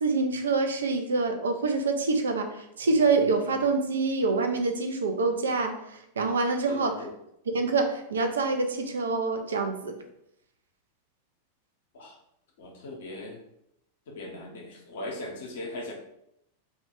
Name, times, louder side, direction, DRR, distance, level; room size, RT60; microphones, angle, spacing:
voice 1, 0.0-6.9 7.5-9.9, right 3 dB, 70° right, 5 dB, 0.3 m, -26 dB
voice 2, 6.7-7.1 11.9-12.2 12.6-13.4 14.1-15.9, left 2 dB, 60° left, 1 dB, 0.6 m, -39 dB
2.2 x 2.0 x 3.0 m, 0.78 s
figure-of-eight pair, 90°, 0 cm